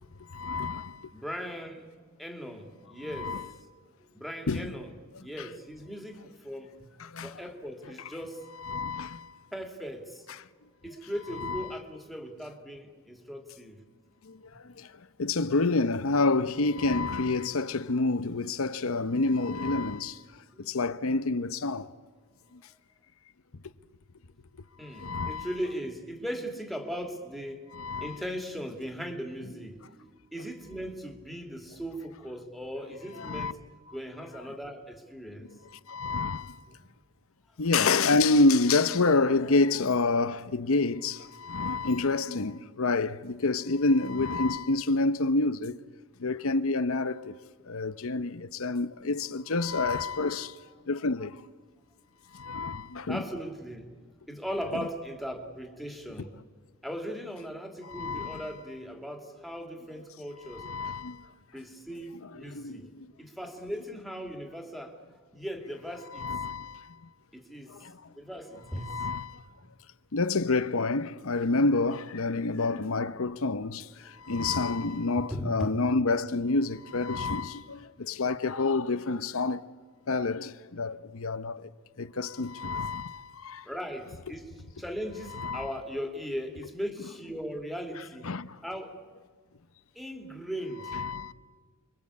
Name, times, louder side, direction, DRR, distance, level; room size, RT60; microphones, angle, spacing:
voice 1, 0.3-1.0 3.1-3.5 4.5-4.7 5.4-5.5 7.0-7.4 8.0-8.1 8.6-9.3 10.3-10.4 11.4-11.7 14.3-14.4 14.8-14.9 15.2-20.2 20.6-21.9 24.9-25.5 27.7-28.2 33.2-33.5 35.9-36.6 37.6-45.8 46.2-47.3 47.7-50.5 50.9-51.3 52.3-53.2 54.7-54.8 57.9-58.5 60.5-61.2 62.1-62.9 66.1-66.8 67.7-67.9 68.8-69.4 70.1-73.9 74.2-79.6 80.1-81.6 82.0-83.6 85.3-85.7 88.2-88.5 90.8-91.3, left 3 dB, 75° left, 0.8 m, -28 dB
voice 2, 1.1-1.9 2.2-3.5 4.1-4.9 5.2-6.9 7.2-8.5 9.5-10.3 10.8-13.8 20.5-20.7 24.8-27.6 28.0-29.9 30.3-33.6 33.9-35.5 53.1-54.0 54.3-56.3 56.8-60.7 61.5-62.9 63.2-65.0 65.3-66.3 67.3-67.8 68.2-69.0 75.3-75.7 83.6-88.3 88.6-89.0 89.9-91.0, equal, ahead, 2.6 m, -38 dB
29.0 x 23.0 x 8.5 m
head